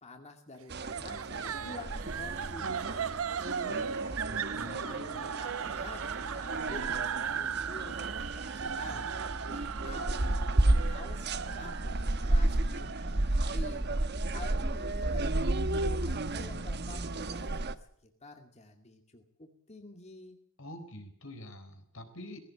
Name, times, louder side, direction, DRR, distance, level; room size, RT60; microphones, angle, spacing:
voice 1, 0.0-4.0 4.5-9.1 9.5-10.3 10.9-13.9 14.3-20.4, left 2 dB, 35° left, 4 dB, 2.4 m, -49 dB
sound 1, 0.7-17.8, right 2 dB, 55° right, 1.1 m, -32 dB
sound 2, 0.9-14.1, right 7 dB, 85° right, 0.7 m, -38 dB
voice 2, 4.3-4.9 20.6-22.4, left 1 dB, 75° left, 7 dB, 4.3 m, -46 dB
19.5 x 16.5 x 8.5 m, 0.68 s
head